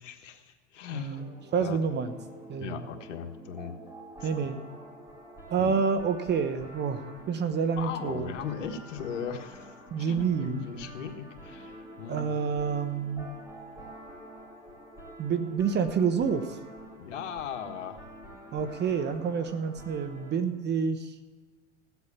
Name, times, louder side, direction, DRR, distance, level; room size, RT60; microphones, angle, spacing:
voice 1, 0.0-1.2 1.6-1.8 2.6-3.7 4.2-4.3 5.6-5.8 7.8-12.2 17.0-18.1, left 7 dB, 80° left, 5 dB, 1.6 m, -38 dB
voice 2, 0.9-2.1 2.5-2.8 4.2-4.6 5.5-8.3 9.9-10.6 12.1-13.3 15.2-16.6 18.5-21.1, right 6 dB, 30° right, 10 dB, 1.0 m, -28 dB
sound 1, 1.1-20.4, right 1 dB, 10° right, 4.2 m, -47 dB
16.5 x 8.1 x 7.1 m, 1.4 s
hypercardioid pair, 110°, 37 cm